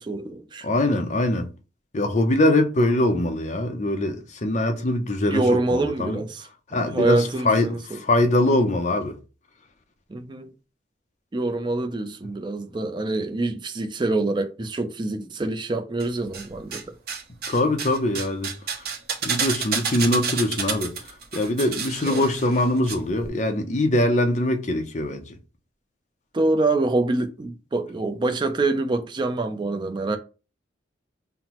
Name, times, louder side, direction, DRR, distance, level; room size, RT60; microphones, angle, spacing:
voice 1, 0.0-0.7 5.3-6.5 6.7-8.0 10.1-10.5 11.3-16.8 20.1-20.2 22.1-22.2 26.3-30.2, right 2 dB, 25° right, 0.4 m, -25 dB
voice 2, 0.6-1.5 1.9-5.4 5.7-6.2 6.7-9.1 17.5-18.5 19.2-20.9 21.3-25.2, left 1 dB, 40° left, 0.6 m, -22 dB
sound 1, 16.0-16.8 17.1-22.9 23.2-23.3, right 6 dB, 55° right, 0.7 m, -30 dB
5.6 x 2.0 x 2.9 m
head